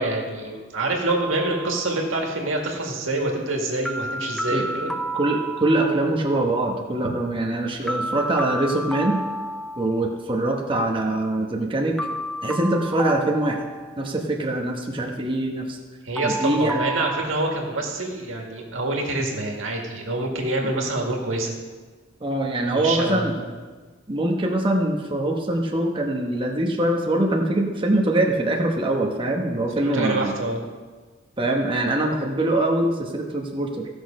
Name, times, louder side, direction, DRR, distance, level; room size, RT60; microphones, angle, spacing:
voice 1, 0.0-4.9 16.0-21.6 22.7-23.5 29.8-30.6, right 2 dB, 90° right, 1 dB, 1.9 m, -26 dB
sound 1, 1.1-2.2 3.9-6.2 7.9-10.2 12.0-14.3 16.2-17.2, right 1 dB, 5° left, 0.4 m, -31 dB
voice 2, 5.1-9.2 9.8-12.0 12.4-13.7 14.0-15.8 16.2-16.8 22.2-23.3 24.1-30.4 31.4-33.9, right 1 dB, 25° right, 0 dB, 1.0 m, -23 dB
15.0 x 6.3 x 5.2 m, 1.4 s
head